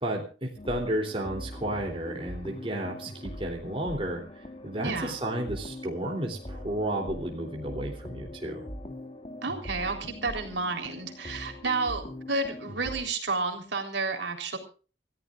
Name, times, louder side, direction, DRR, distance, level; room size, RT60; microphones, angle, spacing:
voice 1, 0.0-4.2 4.6-8.7, right 1 dB, 30° right, 0 dB, 3.2 m, -32 dB
sound 1, 0.6-13.0, left 1 dB, 30° left, 2.0 m, -42 dB
voice 2, 4.8-5.2 9.4-14.6, right 3 dB, 65° right, 3 dB, 3.7 m, -31 dB
28.0 x 14.5 x 2.5 m, 0.37 s
head